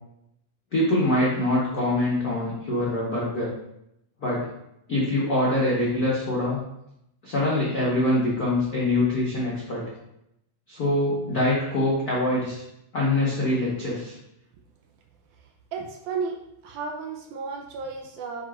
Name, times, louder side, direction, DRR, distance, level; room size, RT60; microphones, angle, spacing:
voice 1, 0.7-3.5 4.2-4.5 4.9-6.6 7.2-9.9 10.7-12.6 12.9-14.1, left 1 dB, 65° left, -6 dB, 0.9 m, -24 dB
voice 2, 15.7-16.4 16.6-18.5, right 5 dB, 80° right, 2 dB, 1.9 m, -33 dB
7.9 x 5.1 x 2.5 m, 0.80 s
omnidirectional pair, 3.8 m